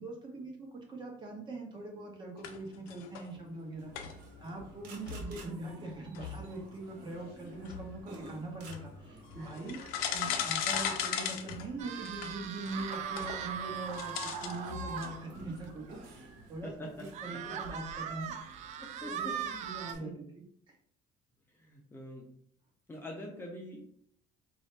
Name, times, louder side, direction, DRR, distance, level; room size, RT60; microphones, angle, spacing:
voice 1, 0.0-3.9 4.4-9.8 10.1-18.3 18.6-20.8, right 2 dB, 30° right, 1 dB, 1.1 m, -42 dB
sound 1, 2.4-3.6 3.9-15.6, left 8 dB, 80° left, 0.6 m, -39 dB
sound 2, 3.8-20.0, right 2 dB, 70° right, 1.1 m, -51 dB
sound 3, 11.8-15.2 15.7-15.8 16.1-16.2 17.1-19.9, right 8 dB, 50° right, 0.4 m, -39 dB
voice 2, 16.6-17.1 17.7-17.8 18.8-19.7 20.0-20.3 21.5-22.3 22.9-23.8, left 1 dB, 15° left, -1 dB, 0.6 m, -45 dB
4.3 x 2.7 x 3.2 m, 0.66 s
cardioid pair, 150°, 15 cm